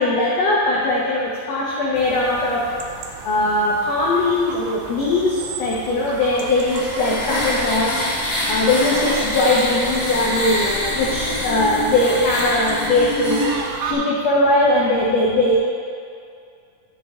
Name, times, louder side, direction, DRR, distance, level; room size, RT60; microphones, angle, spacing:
voice 1, 0.0-2.7 3.2-7.9 8.5-13.4 13.8-15.6, left 2 dB, 80° left, -4 dB, 1.4 m, -20 dB
sound 1, 1.9-13.9, right 6 dB, 80° right, 2.2 m, -36 dB
sound 2, 6.1-13.6, left 1 dB, 30° left, 1.2 m, -25 dB
12.0 x 5.2 x 3.6 m, 2.3 s
omnidirectional pair, 4.2 m